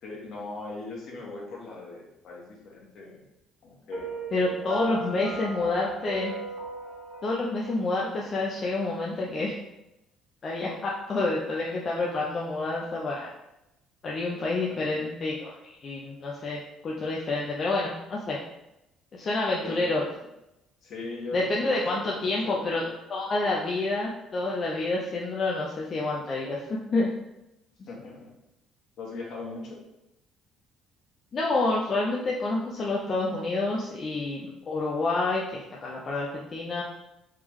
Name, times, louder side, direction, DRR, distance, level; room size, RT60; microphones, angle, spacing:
voice 1, 0.0-3.2 3.6-4.3 4.6-5.4 14.7-14.8 19.5-20.1 20.8-23.0 27.9-28.3 29.0-29.8, left 3 dB, 60° left, -2 dB, 1.2 m, -40 dB
Piano, 3.9-8.9, right 4 dB, 65° right, 1.2 m, -38 dB
voice 2, 4.3-6.3 7.2-9.5 10.4-13.3 14.0-18.4 19.1-20.0 21.3-22.8 23.1-27.1 31.3-36.8, left 2 dB, 40° left, -3 dB, 0.6 m, -28 dB
3.5 x 3.3 x 3.1 m, 0.91 s
cardioid pair, 95°, 0 cm